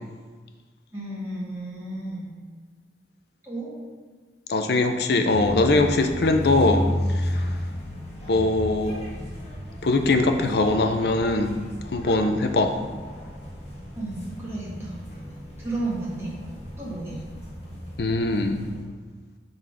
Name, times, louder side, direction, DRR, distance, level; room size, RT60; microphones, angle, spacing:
voice 1, 0.9-2.3 3.4-3.7 13.9-15.0 15.6-16.3 16.8-17.2, right 2 dB, 15° right, -7 dB, 1.7 m, -32 dB
voice 2, 4.5-6.8 7.1-7.4 8.3-9.1 9.8-11.5 11.9-12.7 18.0-18.6, left 2 dB, 60° left, 6 dB, 0.5 m, -21 dB
sound 1, 5.3-18.8, equal, 35° left, 1.3 m, -33 dB
5.6 x 3.9 x 4.8 m, 1.4 s
head